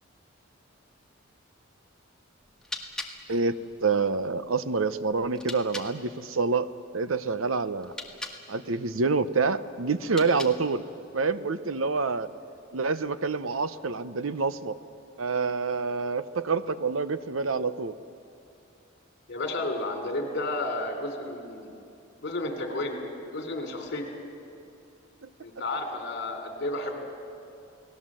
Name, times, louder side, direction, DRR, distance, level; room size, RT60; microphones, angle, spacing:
sound 1, 2.4-5.9 7.8-8.4 10.0-10.8, left 2 dB, 5° left, 1.8 m, -41 dB
voice 1, 3.3-6.7 6.9-7.9 8.5-10.8 11.1-12.3 12.7-14.8 15.2-17.9, right 4 dB, 90° right, 13 dB, 0.9 m, -27 dB
voice 2, 19.3-21.7 22.2-23.0 23.3-24.0 25.4-27.0, left 2 dB, 60° left, 4 dB, 3.5 m, -32 dB
30.0 x 18.5 x 7.6 m, 2.6 s
head